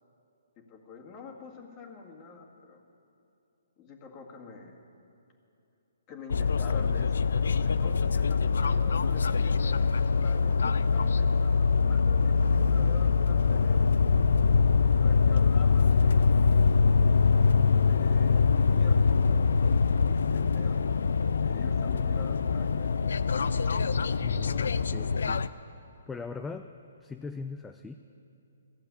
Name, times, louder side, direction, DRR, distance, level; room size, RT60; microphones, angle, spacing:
voice 1, 0.6-2.8 3.8-4.8 6.1-13.9 14.9-16.3 17.8-23.0, left 4 dB, 25° left, 0 dB, 2.1 m, -47 dB
sound 1, 6.3-25.5, left 5 dB, 75° left, 0.4 m, -24 dB
voice 2, 24.2-25.4 26.1-27.9, left 4 dB, 10° left, 7 dB, 0.4 m, -40 dB
15.0 x 7.5 x 9.8 m, 2.7 s
hypercardioid pair, 140°, 0 cm